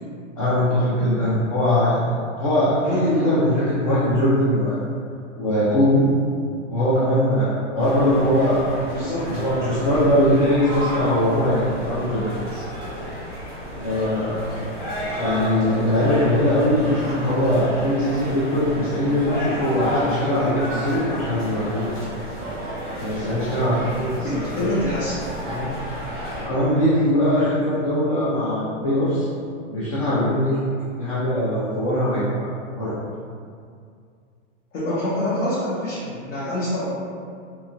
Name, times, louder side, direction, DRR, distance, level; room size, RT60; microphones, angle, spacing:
voice 1, 0.4-2.0 2.4-4.8 5.4-6.0 6.7-8.8 9.3-12.6 13.7-14.4 15.2-21.9 23.0-24.9 25.5-25.7 26.3-29.3 29.7-30.6 31.0-32.9, left 1 dB, 30° left, -10 dB, 0.4 m, -21 dB
voice 2, 2.8-3.5 8.9-9.3 24.2-25.2 34.7-36.9, left 1 dB, 85° left, -10 dB, 1.0 m, -25 dB
sound 1, 7.8-26.4, equal, 10° left, 0.9 m, -31 dB
2.8 x 2.7 x 2.4 m, 2.3 s
hypercardioid pair, 165°, 37 cm